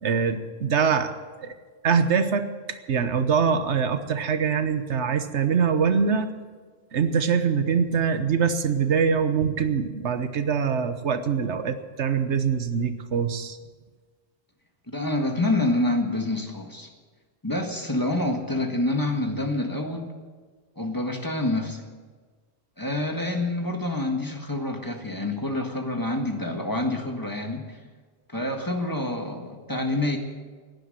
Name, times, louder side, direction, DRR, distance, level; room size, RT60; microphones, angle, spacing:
voice 1, 0.0-1.1 1.4-1.5 1.8-2.5 2.9-6.3 6.9-13.6, right 6 dB, 85° right, 9 dB, 1.3 m, -23 dB
voice 2, 14.9-16.9 17.4-20.1 20.8-21.9 22.8-27.8 28.3-30.2, left 2 dB, 20° left, 3 dB, 1.6 m, -27 dB
16.0 x 10.5 x 7.7 m, 1.4 s
omnidirectional pair, 1.1 m